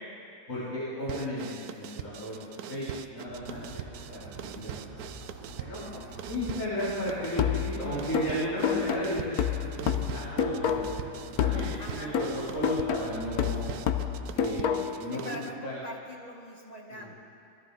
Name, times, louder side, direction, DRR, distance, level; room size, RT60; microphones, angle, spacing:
voice 1, 0.5-2.4 2.7-3.8 4.1-4.7 5.5-5.8 6.3-11.0 11.4-12.3 12.5-13.7 14.3-15.8 16.9-17.2, equal, 50° left, -12 dB, 3.9 m, -35 dB
sound 1, 1.1-15.6, right 11 dB, 75° right, 1.0 m, -43 dB
sound 2, 3.3-14.4, right 2 dB, 55° right, 1.6 m, -45 dB
sound 3, 7.4-11.1 11.4-15.1, left 8 dB, 70° left, 1.2 m, -29 dB
voice 2, 11.8-12.2 15.1-17.1, left 1 dB, 25° left, 1 dB, 1.3 m, -43 dB
21.0 x 13.5 x 3.9 m, 2.5 s
omnidirectional pair, 1.7 m